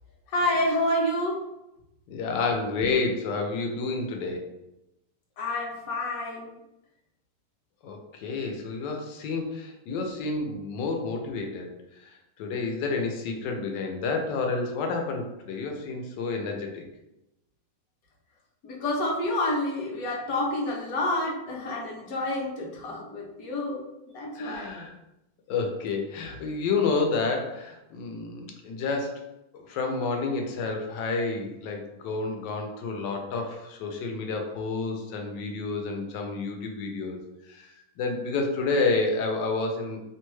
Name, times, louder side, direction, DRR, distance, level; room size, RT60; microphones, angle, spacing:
voice 1, 0.3-1.4 5.4-6.5 18.6-23.8 24.1-24.7, left 1 dB, 65° left, -2 dB, 1.0 m, -28 dB
voice 2, 2.1-4.4 7.8-11.7 12.0-16.9 24.4-24.9 25.5-29.2 29.5-37.2 37.5-40.0, left 3 dB, 85° left, 2 dB, 1.2 m, -30 dB
3.0 x 2.2 x 3.0 m, 0.90 s
omnidirectional pair, 1.9 m